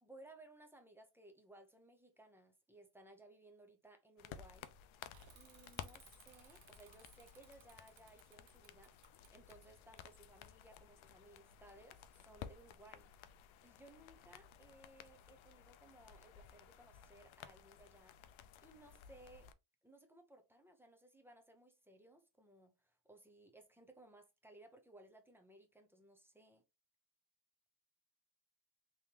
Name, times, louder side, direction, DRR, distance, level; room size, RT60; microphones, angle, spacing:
voice 1, 0.0-4.7 5.3-8.9 9.3-19.5 19.8-26.6, right 1 dB, 5° right, 0.5 m, -62 dB
sound 1, 4.2-19.5, left 9 dB, 85° left, 0.5 m, -56 dB
Bicycle / Mechanisms, 5.1-10.6, right 6 dB, 80° right, 1.0 m, -65 dB
3.5 x 2.9 x 2.8 m
wide cardioid pair, 155°, 47 cm